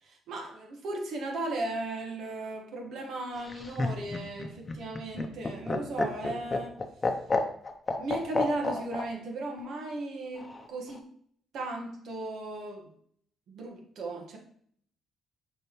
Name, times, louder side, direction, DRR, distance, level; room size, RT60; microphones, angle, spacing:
voice 1, 0.0-6.8 8.0-11.1 11.5-12.9 13.5-14.4, right 2 dB, 75° right, 2 dB, 1.5 m, -36 dB
Laughter, 3.4-9.1 10.4-11.0, left 3 dB, 30° left, 0.8 m, -30 dB
6.4 x 4.9 x 3.1 m, 0.63 s
cardioid pair, 90°, 0 cm